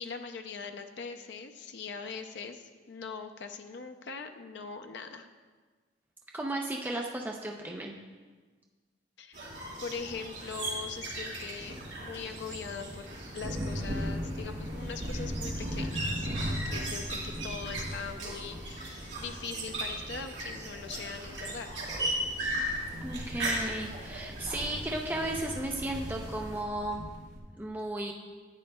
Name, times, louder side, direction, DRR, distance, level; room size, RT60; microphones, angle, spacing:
voice 1, 0.0-5.3 9.2-9.5 9.8-21.7, left 5 dB, 70° left, 6 dB, 0.5 m, -41 dB
voice 2, 6.3-7.9 23.0-27.1 27.6-28.1, right 1 dB, 10° right, 0 dB, 0.5 m, -34 dB
sound 1, 9.3-26.6, right 1 dB, 70° right, 2.3 m, -38 dB
sound 2, 11.4-27.4, equal, 45° right, 0.9 m, -39 dB
10.5 x 8.8 x 2.3 m, 1.4 s
head